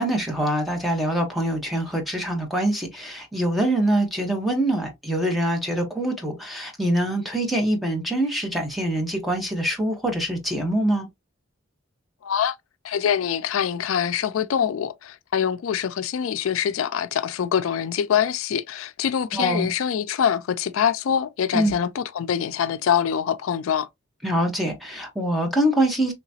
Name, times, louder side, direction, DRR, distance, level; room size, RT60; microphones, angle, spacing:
voice 1, 0.0-11.1 19.3-19.7 21.5-21.7 24.2-26.1, right 1 dB, ahead, 0.9 m, -24 dB
voice 2, 12.2-12.5 12.8-23.9, left 8 dB, 90° left, 0.4 m, -24 dB
3.4 x 2.9 x 2.7 m
head